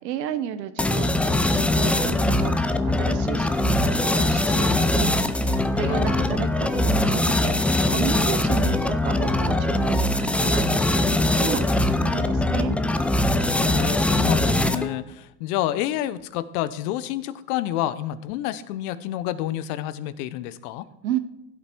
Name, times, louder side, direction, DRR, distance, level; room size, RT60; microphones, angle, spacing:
voice 1, 0.0-12.7 21.0-21.2, right 10 dB, 85° right, 11 dB, 1.1 m, -33 dB
sound 1, 0.8-15.0, left 1 dB, 5° left, 0.3 m, -22 dB
voice 2, 5.7-6.3 13.5-20.9, left 13 dB, 65° left, 15 dB, 1.0 m, -29 dB
15.5 x 8.2 x 4.6 m, 0.89 s
hypercardioid pair, 95°, 49 cm